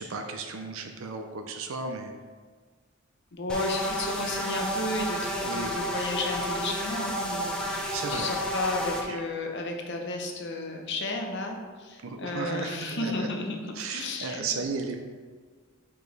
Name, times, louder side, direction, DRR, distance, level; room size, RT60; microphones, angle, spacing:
voice 1, 0.0-2.1 5.5-5.7 7.9-8.3 9.1-9.2 12.0-13.3 13.8-15.0, right 4 dB, 70° right, 5 dB, 0.5 m, -34 dB
voice 2, 3.3-14.4, left 2 dB, 55° left, 2 dB, 0.8 m, -33 dB
sound 1, 3.5-9.0, equal, 5° left, 0.7 m, -31 dB
4.9 x 4.8 x 4.0 m, 1.5 s
head